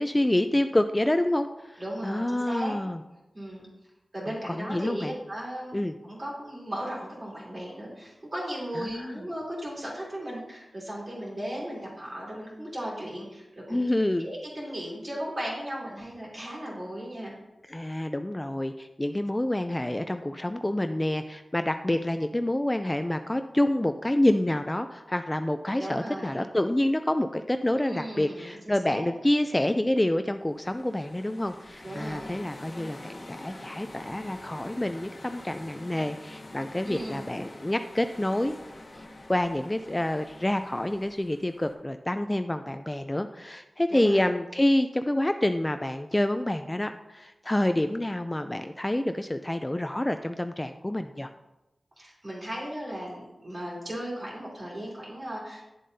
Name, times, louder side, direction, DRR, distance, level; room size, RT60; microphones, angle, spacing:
voice 1, 0.0-3.0 4.5-5.1 5.7-5.9 8.8-9.2 13.7-14.3 17.7-38.6 38.9-51.3, left 1 dB, 15° left, 8 dB, 0.3 m, -27 dB
voice 2, 1.8-2.8 3.3-3.7 4.1-5.7 6.0-13.8 14.2-17.3 25.7-26.4 27.8-29.0 31.8-32.3 36.8-37.4 43.9-44.3 52.0-55.6, equal, 40° right, -5 dB, 3.2 m, -36 dB
sound 1, 30.4-41.7, left 2 dB, 45° left, 1.1 m, -46 dB
10.0 x 7.4 x 2.7 m, 1.0 s
wide cardioid pair, 80°, 0 cm